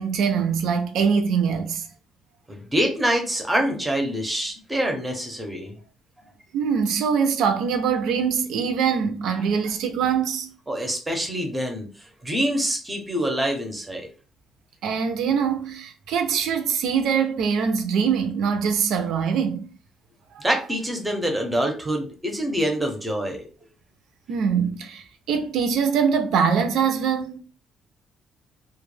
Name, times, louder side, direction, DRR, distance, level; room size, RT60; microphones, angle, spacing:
voice 1, 0.0-1.9 6.5-10.5 14.8-19.7 24.3-27.4, right 6 dB, 70° right, 0.4 m, -23 dB
voice 2, 2.5-5.7 9.4-9.5 10.7-11.9 12.2-14.1 20.4-23.5, right 1 dB, 10° right, 0.5 m, -25 dB
2.1 x 2.0 x 3.1 m
cardioid pair, 165°, 0 cm